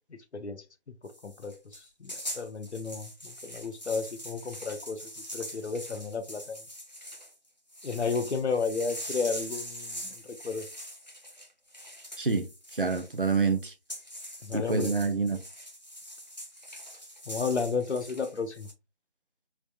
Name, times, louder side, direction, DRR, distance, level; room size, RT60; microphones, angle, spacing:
voice 1, 0.3-6.6 7.8-10.7 14.4-14.9 17.3-18.7, left 4 dB, 80° left, 0.7 m, -33 dB
sound 1, 1.1-7.3 7.7-18.7, equal, 40° left, 0.6 m, -43 dB
voice 2, 12.7-13.7 14.5-15.4, right 4 dB, 55° right, 0.5 m, -27 dB
3.4 x 2.2 x 2.4 m
figure-of-eight pair, 170°, 33 cm